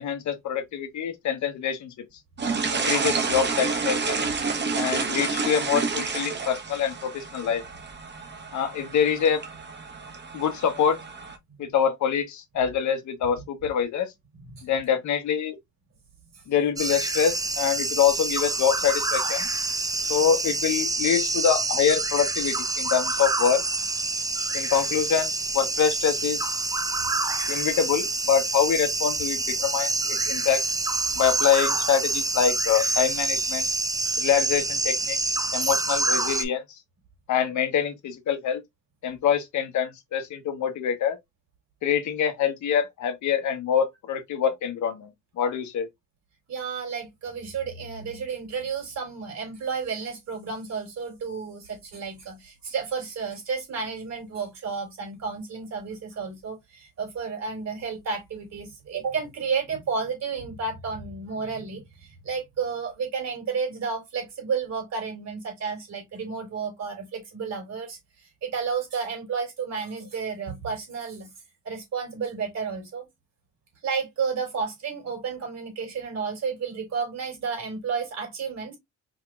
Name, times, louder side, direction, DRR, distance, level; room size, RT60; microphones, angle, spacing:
voice 1, 0.0-2.0 2.7-4.2 4.7-7.6 8.5-9.4 10.3-11.0 11.6-14.1 14.6-15.6 16.5-19.5 20.1-23.6 24.5-26.5 27.5-30.6 31.1-33.7 34.2-36.6 37.3-38.6 39.0-41.2 41.8-45.9, left 8 dB, 70° left, 1.0 m, -25 dB
sound 1, 2.4-11.4, right 4 dB, 35° right, 1.0 m, -29 dB
voice 2, 2.4-2.8 14.5-14.7 16.3-16.4 46.5-71.3 71.6-73.1 73.8-78.8, right 5 dB, 60° right, 3.2 m, -32 dB
sound 2, 16.8-36.4, right 3 dB, 10° right, 0.6 m, -27 dB
4.8 x 2.9 x 2.2 m
cardioid pair, 90°, 30 cm